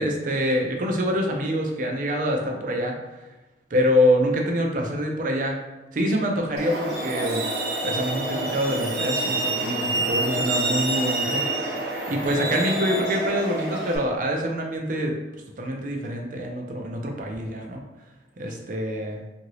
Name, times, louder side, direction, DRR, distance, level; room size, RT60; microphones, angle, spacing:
voice 1, 0.0-3.0 3.7-5.6 5.9-7.5 7.8-15.2 15.6-17.9 18.4-19.2, equal, 50° right, 1 dB, 0.5 m, -25 dB
Truck, 6.6-14.0, right 2 dB, 70° right, 0.7 m, -27 dB
2.8 x 2.6 x 3.1 m, 1.1 s
head